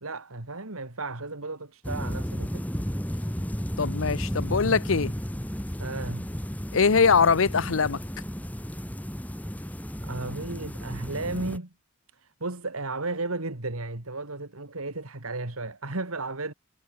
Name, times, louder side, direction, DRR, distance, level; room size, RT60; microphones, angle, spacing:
voice 1, 0.0-2.6 5.8-6.3 10.0-11.7 12.4-16.5, right 2 dB, 85° right, 2.7 m, -34 dB
sound 1, 1.8-11.6, equal, 5° left, 2.0 m, -33 dB
voice 2, 3.8-5.1 6.7-8.0, left 5 dB, 70° left, 0.7 m, -22 dB
head